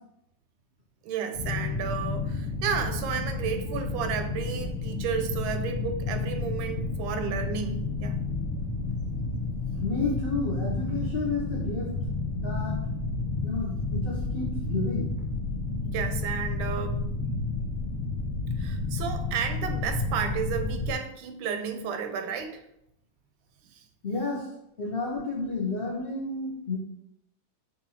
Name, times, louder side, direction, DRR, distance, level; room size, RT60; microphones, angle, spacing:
voice 1, 1.0-8.2 15.8-17.0 18.6-22.6, right 7 dB, 80° right, 8 dB, 1.3 m, -32 dB
sound 1, 1.3-20.9, left 3 dB, 40° left, 1.4 m, -31 dB
voice 2, 9.8-11.9 12.3-12.8 13.4-15.1 24.0-24.5 24.8-26.8, left 3 dB, 75° left, -4 dB, 0.5 m, -31 dB
6.1 x 2.6 x 2.7 m, 0.77 s
omnidirectional pair, 2.2 m